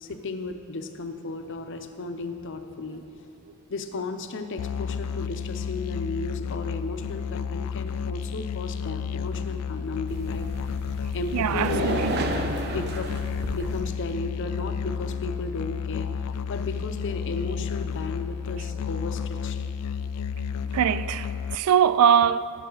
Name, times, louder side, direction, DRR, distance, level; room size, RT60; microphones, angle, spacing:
voice 1, 0.0-3.0 3.7-10.7 11.1-12.0 12.7-13.1 13.5-16.1 16.5-19.6, left 3 dB, 60° left, 0.7 m, -34 dB
Musical instrument, 4.6-21.5, left 6 dB, 85° left, 0.3 m, -31 dB
sound 1, 10.1-13.8, right 2 dB, 50° right, 0.9 m, -31 dB
voice 2, 11.3-12.1 20.7-22.5, right 8 dB, 85° right, 0.3 m, -22 dB
17.5 x 7.7 x 3.9 m
head